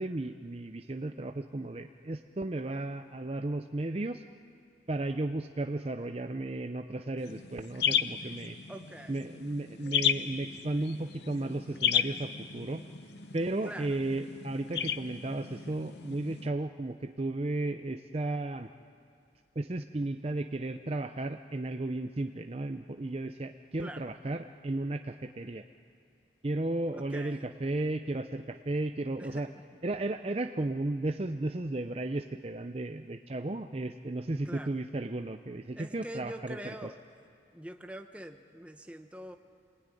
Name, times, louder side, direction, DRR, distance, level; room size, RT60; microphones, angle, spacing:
voice 1, 0.0-4.2 4.9-8.6 9.1-12.8 13.3-18.7 19.6-25.6 26.4-29.5 29.8-36.6 36.8-36.9, right 2 dB, 35° right, 8 dB, 0.6 m, -34 dB
sound 1, 7.2-16.5, left 9 dB, 70° left, 0.8 m, -34 dB
voice 2, 8.7-9.2 13.6-14.0 23.8-24.0 26.9-27.5 29.2-29.6 34.4-34.8 35.7-37.0 37.5-39.4, right 1 dB, 5° right, 6 dB, 1.0 m, -44 dB
27.5 x 20.0 x 9.9 m, 2.5 s
head